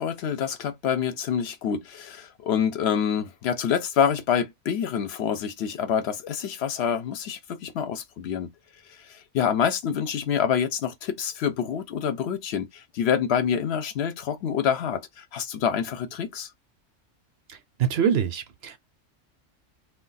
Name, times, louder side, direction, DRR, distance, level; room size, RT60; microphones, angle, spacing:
voice 1, 0.0-8.5 9.1-16.5, left 8 dB, 65° left, 0.8 m, -27 dB
voice 2, 17.5-18.8, right 8 dB, 65° right, 0.7 m, -25 dB
2.3 x 2.2 x 3.8 m
omnidirectional pair, 1.3 m